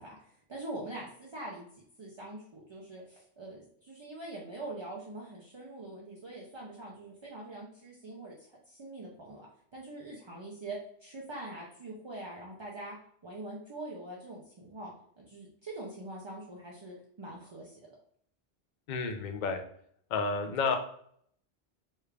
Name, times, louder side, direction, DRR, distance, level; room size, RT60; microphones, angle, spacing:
voice 1, 0.0-1.7 2.0-8.4 8.7-13.0 13.2-17.8, right 2 dB, 45° right, -4 dB, 0.4 m, -44 dB
voice 2, 18.9-19.6 20.1-20.8, left 4 dB, 55° left, 5 dB, 0.5 m, -30 dB
3.2 x 2.4 x 3.2 m, 0.64 s
omnidirectional pair, 1.1 m